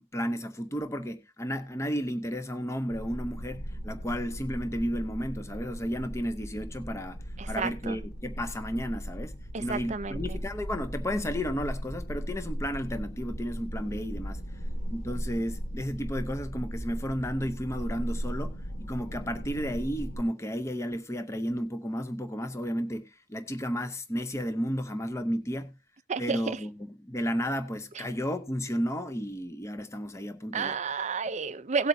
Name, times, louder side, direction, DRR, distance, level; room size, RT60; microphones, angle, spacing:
voice 1, 0.0-7.2 7.5-9.3 9.6-14.4 14.9-25.7 26.2-30.8, equal, 15° left, 0.6 m, -33 dB
sound 1, 2.9-20.2, equal, 55° left, 1.8 m, -37 dB
voice 2, 7.4-8.0 9.5-10.2 26.1-26.6 30.5-31.9, right 5 dB, 35° right, 0.5 m, -31 dB
17.5 x 8.1 x 2.7 m
head